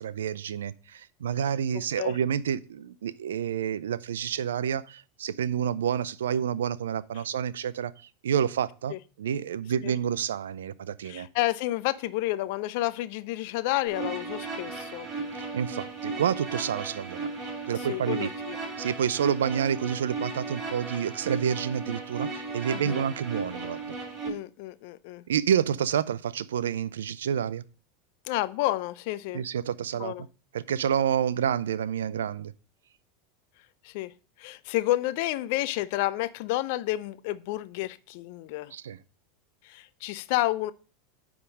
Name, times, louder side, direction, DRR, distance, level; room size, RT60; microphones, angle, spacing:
voice 1, 0.0-7.9 8.2-8.9 9.2-11.3 15.5-17.3 17.7-18.3 18.8-23.8 25.3-27.6 29.3-30.1 30.5-32.5 38.7-39.0, right 8 dB, 75° right, 0.4 m, -29 dB
voice 2, 11.0-15.1 17.9-18.6 22.7-23.0 24.2-25.2 28.3-29.4 30.0-30.2 33.8-34.1 34.4-38.7 39.6-40.7, left 16 dB, 55° left, 0.5 m, -30 dB
sound 1, 13.9-24.3, right 3 dB, 35° right, 3.2 m, -36 dB
9.6 x 3.6 x 5.2 m
figure-of-eight pair, 85°, 0 cm